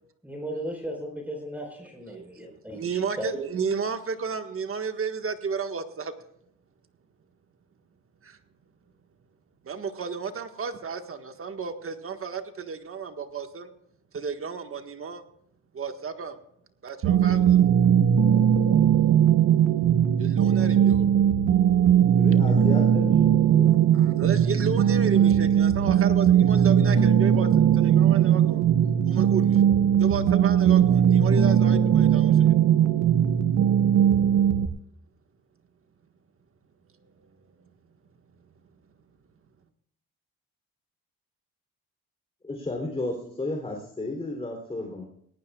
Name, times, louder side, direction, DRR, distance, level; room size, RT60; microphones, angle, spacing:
voice 1, 0.2-3.3, equal, 5° right, 1 dB, 4.6 m, -36 dB
voice 2, 2.0-6.1 8.2-8.4 9.6-13.7 14.1-15.2 15.7-16.4 16.8-17.6 20.2-21.1 23.9-28.6 29.1-29.6 30.0-32.5, right 5 dB, 45° right, 7 dB, 1.6 m, -32 dB
sound 1, 17.0-34.7, right 9 dB, 70° right, 1.1 m, -19 dB
voice 3, 22.0-23.7 42.4-45.1, left 2 dB, 20° left, 1 dB, 3.5 m, -33 dB
18.5 x 18.5 x 2.4 m, 0.74 s
cardioid pair, 90°, 30 cm